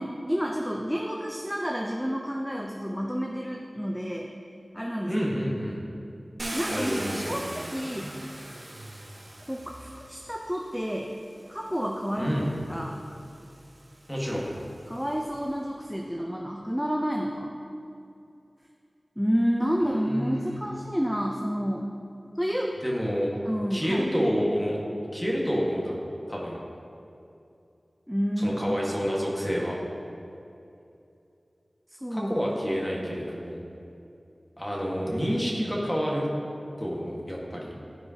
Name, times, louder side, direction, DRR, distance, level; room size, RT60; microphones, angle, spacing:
voice 1, 0.0-4.3 4.7-5.2 6.5-7.0 7.3-8.1 9.5-11.1 11.5-13.0 14.9-17.5 19.2-21.9 22.4-22.8 23.4-24.1 28.1-28.8 31.9-32.4 33.1-33.3, equal, ahead, 0 dB, 0.5 m, -30 dB
voice 2, 5.1-5.8 6.7-7.4 12.2-12.6 14.1-14.5 20.0-20.6 22.8-23.3 23.7-24.8 25.1-26.0 26.3-26.6 28.4-29.8 32.1-33.6 34.6-36.3 36.8-37.7, equal, 15° left, -4 dB, 1.5 m, -28 dB
Car, 6.4-10.5 11.5-11.6 12.1-15.4, right 1 dB, 55° right, 0.8 m, -39 dB
12.5 x 4.8 x 2.8 m, 2.6 s
wide cardioid pair, 55°, 0 cm